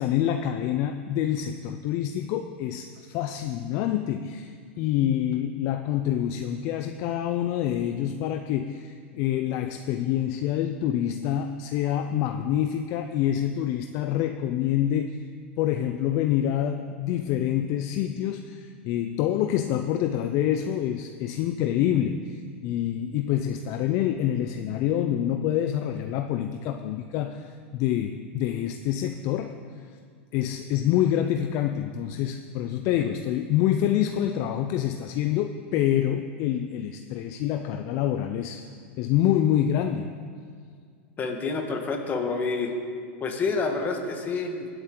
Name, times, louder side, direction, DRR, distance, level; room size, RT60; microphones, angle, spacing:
voice 1, 0.0-15.2 15.6-29.6 30.3-38.7 39.0-40.1, left 11 dB, 45° left, 7 dB, 0.5 m, -26 dB
voice 2, 41.2-42.7 43.2-44.7, left 4 dB, 25° left, 3 dB, 1.6 m, -28 dB
19.0 x 8.0 x 3.9 m, 2.1 s
supercardioid pair, 130°, 7 cm